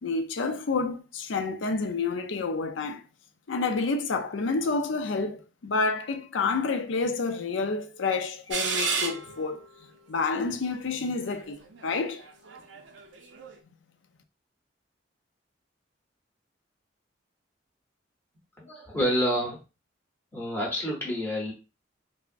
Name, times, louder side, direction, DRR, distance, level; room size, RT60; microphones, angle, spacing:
voice 1, 0.0-3.0 3.5-9.6 10.1-12.2, left 4 dB, 80° left, 0.5 m, -29 dB
sound 1, 8.5-9.6 10.4-10.5 11.2-13.6, right 5 dB, 70° right, 0.5 m, -32 dB
voice 2, 18.6-19.6 20.3-21.5, equal, 10° left, 0.9 m, -28 dB
3.4 x 2.0 x 2.5 m
head